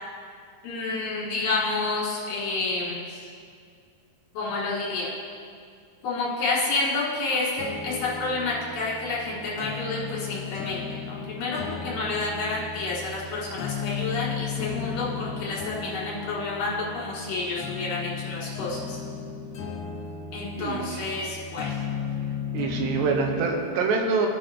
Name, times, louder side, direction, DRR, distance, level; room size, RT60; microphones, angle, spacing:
voice 1, 0.6-3.0 4.3-5.1 6.0-7.5 7.8-10.8 11.1-19.0 20.3-21.7, left 3 dB, 60° left, -6 dB, 3.0 m, -29 dB
sound 1, 7.6-23.6, left 6 dB, 85° left, 1.6 m, -35 dB
voice 2, 20.6-21.1 22.5-24.3, right 4 dB, 80° right, 3 dB, 2.8 m, -25 dB
16.0 x 5.6 x 3.5 m, 2.3 s
omnidirectional pair, 4.9 m